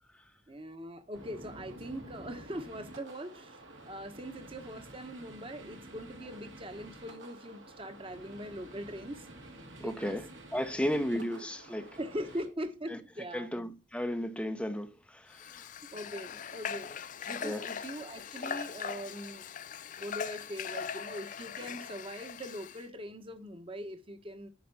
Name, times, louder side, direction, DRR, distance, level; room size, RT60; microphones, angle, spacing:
voice 1, 0.5-9.3 9.7-10.2 10.8-11.2 12.0-13.5 15.9-16.9 17.3-19.4 20.0-24.5, equal, 25° right, 1.2 m, -42 dB
sound 1, 1.1-12.5, right 1 dB, 70° right, 2.3 m, -50 dB
voice 2, 9.8-10.2 10.5-12.0 12.9-13.0 13.3-15.7 17.4-17.6, equal, 5° left, 0.7 m, -34 dB
Water / Water tap faucet, 15.3-22.8, left 7 dB, 40° left, 0.4 m, -40 dB
9.4 x 5.7 x 5.7 m
head